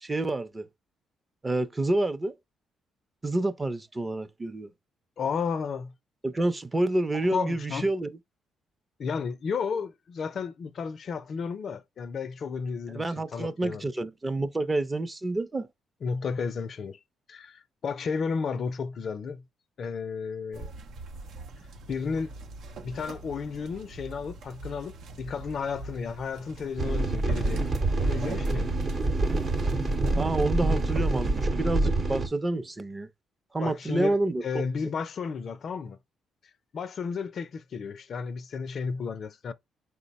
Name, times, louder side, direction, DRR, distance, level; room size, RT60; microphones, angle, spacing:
voice 1, 0.0-0.7 1.4-2.3 3.2-4.7 6.2-8.2 12.9-15.7 30.2-33.1 33.5-34.6, right 2 dB, 20° right, 0.6 m, -28 dB
voice 2, 5.2-5.9 7.1-7.9 9.0-13.8 16.0-17.0 17.3-19.4 19.8-20.7 21.9-22.3 22.8-27.7 28.0-28.7 33.6-34.2 34.4-36.0 36.7-39.5, left 5 dB, 55° left, 0.4 m, -33 dB
sound 1, 20.5-31.5, right 3 dB, 75° right, 0.6 m, -43 dB
sound 2, 26.8-32.3, right 2 dB, 45° right, 0.9 m, -26 dB
4.7 x 2.1 x 4.0 m
cardioid pair, 90°, 0 cm